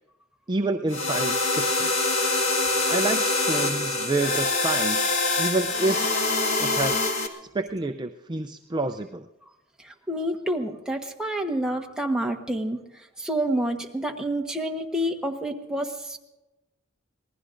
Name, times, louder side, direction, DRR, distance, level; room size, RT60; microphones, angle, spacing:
voice 1, 0.5-1.9 2.9-6.1 6.6-7.0 7.5-9.3, right 2 dB, 20° right, 6 dB, 0.5 m, -28 dB
sound 1, 0.9-7.3, left 2 dB, 65° left, 1.8 m, -24 dB
voice 2, 10.1-12.8 13.2-16.2, right 1 dB, 5° right, 2 dB, 1.2 m, -28 dB
26.5 x 19.0 x 2.6 m, 1.0 s
head